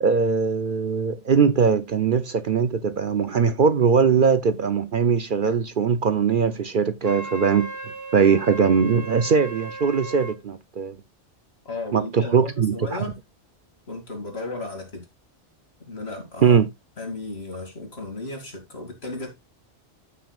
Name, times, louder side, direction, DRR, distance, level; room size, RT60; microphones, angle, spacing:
voice 1, 0.0-7.7 8.1-11.0 11.9-13.0 16.4-16.7, right 6 dB, 55° right, 0.7 m, -21 dB
Wind instrument woodwind instrument, 7.0-10.4, right 2 dB, 30° right, 0.3 m, -36 dB
voice 2, 11.6-13.2 13.9-15.0 15.9-16.6 17.0-19.3, left 2 dB, 60° left, 2.8 m, -34 dB
14.5 x 6.0 x 2.4 m
omnidirectional pair, 1.2 m